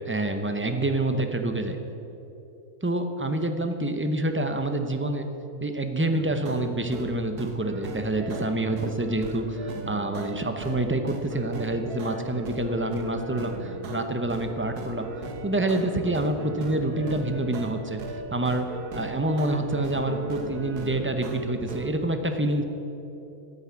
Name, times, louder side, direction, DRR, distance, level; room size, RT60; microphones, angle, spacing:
voice 1, 0.1-1.8 2.8-5.3 5.6-15.1 15.4-18.0 18.3-18.7 18.9-22.6, right 2 dB, 15° right, 6 dB, 0.4 m, -27 dB
sound 1, 6.1-21.9, right 2 dB, 90° right, 1.7 m, -37 dB
13.0 x 7.2 x 9.6 m, 3.0 s
omnidirectional pair, 1.6 m